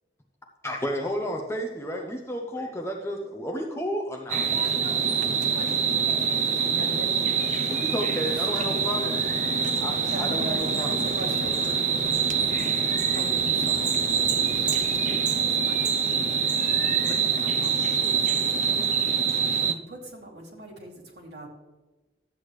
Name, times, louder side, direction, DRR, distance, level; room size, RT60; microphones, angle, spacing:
voice 1, 0.6-4.5 7.7-9.2 9.8-11.7, equal, 15° left, 2 dB, 0.7 m, -32 dB
sound 1, 4.3-19.7, right 6 dB, 40° right, 0.5 m, -25 dB
voice 2, 4.4-7.4 8.0-10.1 11.7-12.0, left 2 dB, 45° left, -1 dB, 2.0 m, -47 dB
voice 3, 6.5-7.6 8.2-8.6 10.0-11.7 13.1-14.7 15.0-21.5, right 1 dB, 65° right, -3 dB, 2.7 m, -41 dB
sound 2, 8.5-15.9, equal, 5° right, 3.8 m, -46 dB
12.5 x 8.4 x 3.2 m, 1.2 s
head